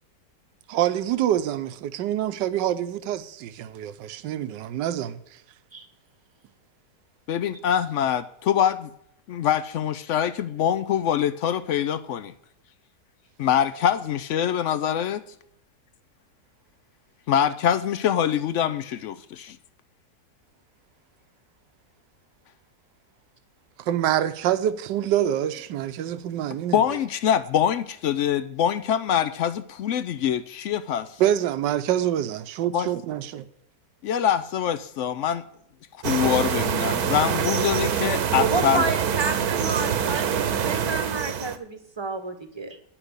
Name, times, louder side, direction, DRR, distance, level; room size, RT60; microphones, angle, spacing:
voice 1, 0.7-5.2 23.9-26.8 31.2-33.5, right 11 dB, 85° right, 1.4 m, -26 dB
voice 2, 7.3-8.9 9.3-12.3 13.4-15.2 17.3-19.6 26.7-31.1 32.7-32.9 34.0-35.4 36.0-38.8, left 9 dB, 80° left, 0.6 m, -24 dB
sound 1, 36.0-41.6, right 8 dB, 65° right, 1.3 m, -25 dB
voice 3, 38.4-42.8, right 3 dB, 20° right, 0.9 m, -30 dB
10.0 x 6.0 x 8.0 m
omnidirectional pair, 1.9 m